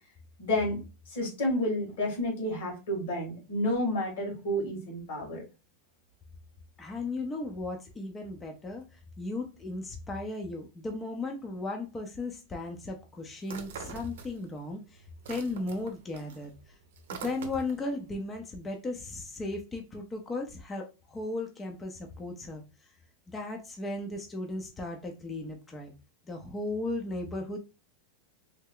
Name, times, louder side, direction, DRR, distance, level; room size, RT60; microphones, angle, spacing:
voice 1, 0.4-0.8 1.1-5.4, left 1 dB, 75° left, 1 dB, 1.9 m, -30 dB
voice 2, 6.8-15.0 15.3-16.5 17.1-22.6 23.3-25.9 26.3-27.6, left 2 dB, 20° left, 2 dB, 0.6 m, -36 dB
sound 1, 13.4-14.7 15.0-17.9, right 6 dB, 85° right, 0.6 m, -44 dB
3.3 x 2.0 x 3.7 m, 0.30 s
supercardioid pair, 125°, 0 cm